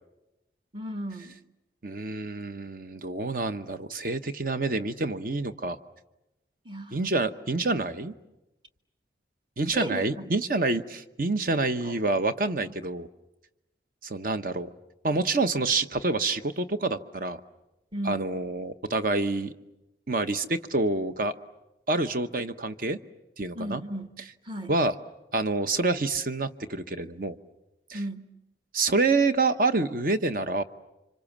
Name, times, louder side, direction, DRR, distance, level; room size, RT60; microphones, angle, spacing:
voice 1, 0.7-1.4 6.6-7.0 9.7-10.3 11.8-12.0 12.6-12.8 17.9-18.4 23.5-24.2 24.4-24.8 27.9-28.3, right 1 dB, 25° right, 7 dB, 1.3 m, -36 dB
voice 2, 1.8-5.8 6.9-8.1 9.6-13.1 14.0-14.7 15.0-17.4 18.1-19.5 20.1-21.3 21.9-23.0 23.4-23.8 24.7-24.9 25.3-27.4 27.9-28.0 28.7-30.6, right 3 dB, 50° right, 10 dB, 1.0 m, -27 dB
30.0 x 25.5 x 7.3 m, 0.97 s
head